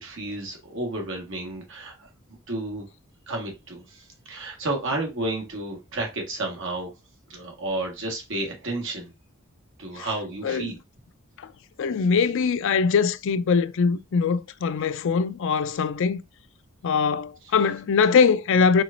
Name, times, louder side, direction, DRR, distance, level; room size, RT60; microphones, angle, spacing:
voice 1, 0.0-2.1 2.5-2.8 3.3-6.9 7.3-9.1 9.8-10.8, right 2 dB, 60° right, 1.4 m, -31 dB
voice 2, 11.8-16.2 16.8-18.8, left 5 dB, 60° left, 0.4 m, -22 dB
4.5 x 3.9 x 2.5 m
head